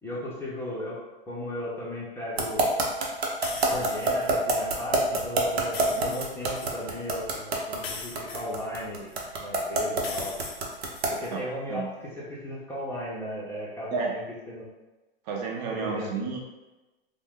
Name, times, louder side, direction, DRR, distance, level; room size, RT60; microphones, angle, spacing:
voice 1, 0.0-1.0 1.3-2.7 3.7-10.4 11.1-14.2 14.5-14.7 15.7-16.3, left 1 dB, 10° left, -7 dB, 0.6 m, -36 dB
sound 1, 2.4-11.2, right 3 dB, 85° right, 0.7 m, -25 dB
sound 2, 3.4-4.3 5.6-6.8 7.8-9.1 10.0-11.3, left 4 dB, 85° left, 0.6 m, -40 dB
voice 2, 15.3-16.4, right 5 dB, 45° right, -1 dB, 0.5 m, -31 dB
2.5 x 2.1 x 3.5 m, 1.1 s
hypercardioid pair, 125°, 30 cm